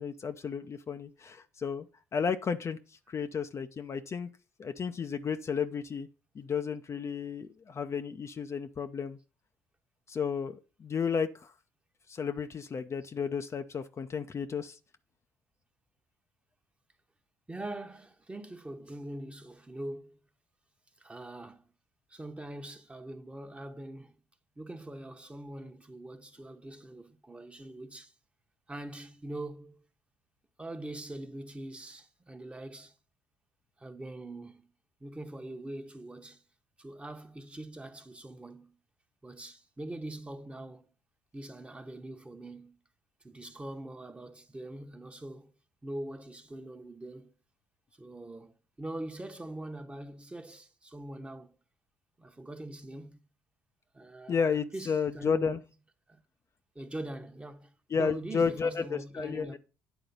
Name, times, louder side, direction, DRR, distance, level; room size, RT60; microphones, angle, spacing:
voice 1, 0.0-1.9 2.1-2.8 3.1-4.3 4.6-6.1 6.3-9.2 10.1-11.5 12.1-14.8 54.3-55.6 57.9-59.6, left 6 dB, 40° left, 0.6 m, -32 dB
voice 2, 17.5-20.2 21.0-21.6 22.1-24.2 24.6-28.1 28.7-29.8 30.6-32.9 33.8-34.7 35.0-36.4 36.8-38.7 39.2-40.9 41.3-42.8 43.2-45.5 45.8-47.3 48.0-51.5 52.2-53.2 53.9-55.6 56.1-56.2 56.7-59.6, right 1 dB, 15° right, 1.1 m, -43 dB
9.2 x 3.9 x 5.3 m
hypercardioid pair, 55°, 8 cm